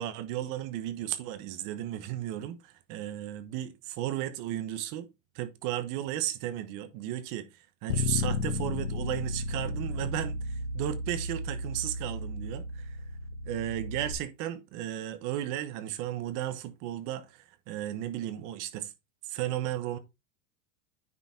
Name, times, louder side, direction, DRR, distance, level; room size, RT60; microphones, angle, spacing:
voice 1, 0.0-5.1 5.3-13.0 13.4-18.9 19.2-20.0, right 12 dB, 40° right, 1.1 m, -34 dB
Bass guitar, 7.9-14.1, left 2 dB, 50° left, 1.8 m, -34 dB
9.6 x 5.1 x 3.5 m
supercardioid pair, 170°, 49 cm